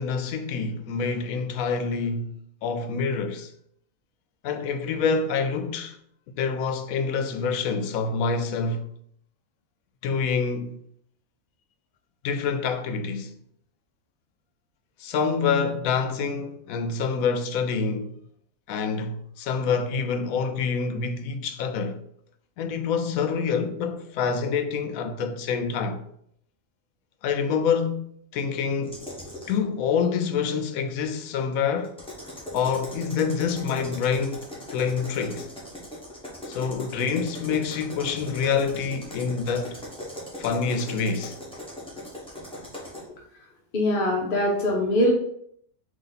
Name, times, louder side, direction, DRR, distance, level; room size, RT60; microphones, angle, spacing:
voice 1, 0.0-2.3 2.6-3.5 4.4-6.0 6.4-8.9 10.0-10.7 12.2-13.3 15.0-18.2 18.7-22.0 22.6-26.0 27.2-29.0 29.5-31.9 32.5-35.5 36.5-39.8 40.4-41.4, left 5 dB, 85° left, 1.0 m, -26 dB
sound 1, 28.8-29.6 31.8-43.1, left 1 dB, 5° left, 1.0 m, -39 dB
voice 2, 43.7-45.1, left 1 dB, 50° left, 0.7 m, -22 dB
4.0 x 2.8 x 4.0 m
omnidirectional pair, 1.4 m